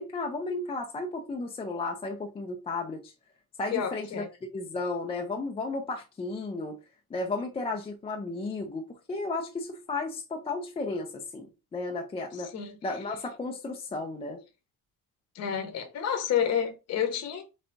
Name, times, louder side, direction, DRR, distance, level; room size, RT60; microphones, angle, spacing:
voice 1, 0.0-3.1 3.6-4.2 4.5-6.8 7.1-12.5 12.8-14.4, left 3 dB, 15° left, 0.3 m, -34 dB
voice 2, 3.7-4.3 12.5-12.8 15.3-17.4, left 8 dB, 40° left, 0.8 m, -29 dB
4.0 x 3.3 x 3.8 m
cardioid pair, 180°, 40 cm